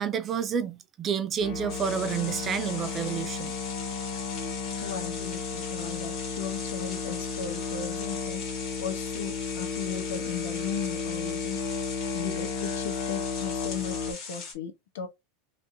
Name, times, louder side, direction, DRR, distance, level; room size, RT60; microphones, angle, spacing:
voice 1, 0.0-3.5, right 8 dB, 25° right, 0.4 m, -29 dB
Musical instrument, 1.4-14.1, left 5 dB, 60° left, 0.9 m, -33 dB
sound 1, 1.7-14.5, left 5 dB, 35° left, 1.8 m, -40 dB
voice 2, 4.8-8.4 8.8-11.6 12.1-15.1, left 7 dB, 85° left, 1.1 m, -36 dB
3.3 x 2.9 x 2.7 m
supercardioid pair, 160°, 0 cm